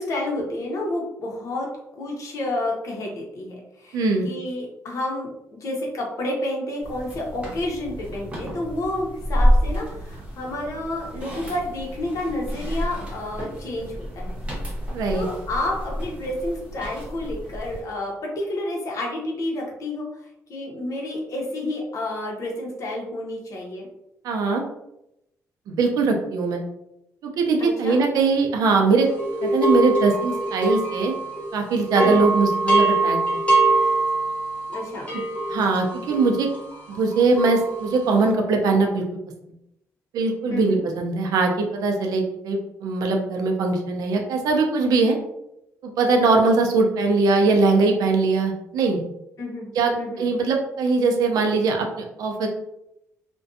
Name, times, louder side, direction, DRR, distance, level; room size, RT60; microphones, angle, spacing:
voice 1, 0.0-1.7 2.0-5.3 5.6-14.3 15.1-20.1 20.5-23.9 27.6-28.0 32.0-32.3 34.7-35.1 40.5-40.8 46.1-46.4 49.4-50.3, left 1 dB, 60° left, -1 dB, 0.8 m, -30 dB
voice 2, 3.9-4.3 14.9-15.2 24.2-24.6 25.7-26.6 27.2-29.1 29.4-31.1 31.5-33.2 35.5-36.5 36.9-39.0 40.1-45.2 45.8-49.0 49.7-52.5, right 3 dB, 85° right, 2 dB, 0.5 m, -21 dB
sound 1, 6.8-17.8, equal, 20° right, 0.9 m, -28 dB
sound 2, 29.2-31.5 31.8-38.1, right 2 dB, 20° left, 0.8 m, -23 dB
2.5 x 2.2 x 2.6 m, 0.84 s
cardioid pair, 120°, 6 cm